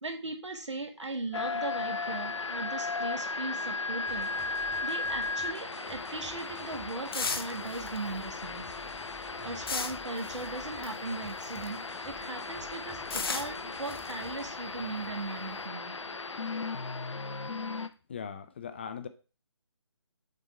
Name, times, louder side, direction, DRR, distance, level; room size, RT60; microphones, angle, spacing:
voice 1, 0.0-4.3 4.8-8.7 9.4-16.2, right 2 dB, 80° right, 4 dB, 1.6 m, -38 dB
sound 1, 1.3-17.9, left 3 dB, 85° left, 0.6 m, -36 dB
sound 2, 4.1-14.5, equal, 5° right, 0.7 m, -53 dB
sound 3, 5.9-11.9 12.2-15.6, left 5 dB, 55° left, 0.8 m, -38 dB
voice 2, 18.1-19.1, left 7 dB, 25° left, 10 dB, 0.4 m, -39 dB
6.5 x 3.6 x 4.2 m, 0.34 s
figure-of-eight pair, 150°, 15 cm